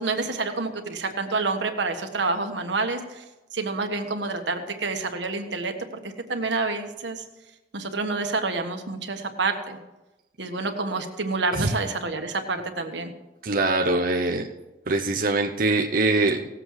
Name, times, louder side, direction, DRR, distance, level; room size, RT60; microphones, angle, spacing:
voice 1, 0.0-3.2 3.5-5.7 6.0-7.2 7.7-9.8 10.4-13.1, right 3 dB, 85° right, 5 dB, 1.4 m, -28 dB
voice 2, 13.4-14.5 14.9-16.4, right 2 dB, 50° right, 1 dB, 0.8 m, -23 dB
18.0 x 7.7 x 4.8 m, 1.0 s
head